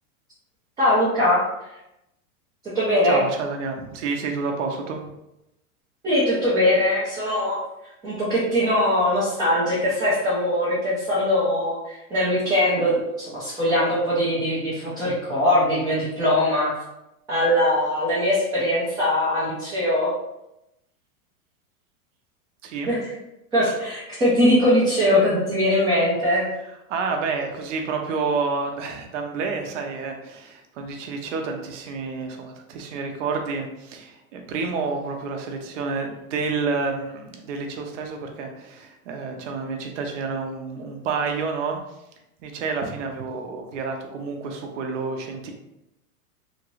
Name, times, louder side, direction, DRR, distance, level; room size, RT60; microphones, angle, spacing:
voice 1, 0.8-1.7 2.7-3.2 6.0-16.7 17.3-20.1 22.9-23.0 23.5-26.5, left 1 dB, 10° right, -9 dB, 0.5 m, -21 dB
voice 2, 3.0-5.0 22.6-23.0 26.9-41.8 42.4-45.5, right 4 dB, 55° right, 3 dB, 0.7 m, -29 dB
2.9 x 2.5 x 3.0 m, 0.89 s
hypercardioid pair, 135°, 45 cm